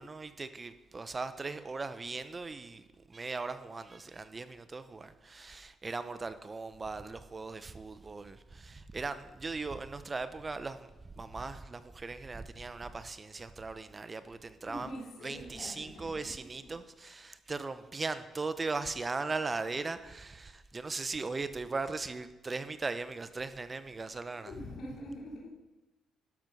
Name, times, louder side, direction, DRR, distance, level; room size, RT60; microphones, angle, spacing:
voice 1, 0.0-14.9 15.2-24.5, right 3 dB, 30° right, 0.6 m, -38 dB
voice 2, 14.7-16.3 24.3-25.5, equal, 70° left, 3.2 m, -44 dB
12.0 x 6.1 x 5.3 m
cardioid pair, 90°, 0 cm